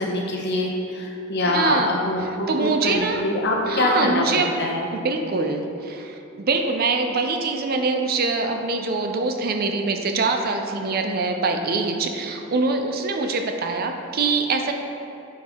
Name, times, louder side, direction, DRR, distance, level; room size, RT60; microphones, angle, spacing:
voice 1, 0.0-4.9, left 2 dB, 50° left, 0 dB, 0.9 m, -24 dB
voice 2, 1.4-2.1 2.5-3.2 3.7-4.5 4.9-14.7, right 3 dB, 45° right, 5 dB, 0.5 m, -24 dB
9.1 x 4.4 x 3.6 m, 2.8 s
head